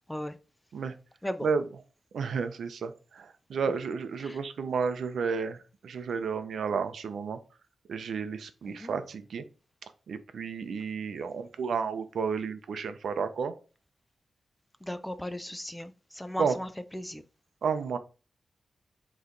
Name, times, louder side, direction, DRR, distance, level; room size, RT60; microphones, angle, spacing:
voice 1, 2.1-7.4 7.9-9.4 9.8-13.5 16.4-16.5 17.6-18.0, right 5 dB, 90° right, 10 dB, 0.7 m, -32 dB
voice 2, 14.8-17.2, left 1 dB, 5° left, 11 dB, 0.4 m, -37 dB
8.1 x 3.2 x 3.8 m, 0.35 s
wide cardioid pair, 150°, 0 cm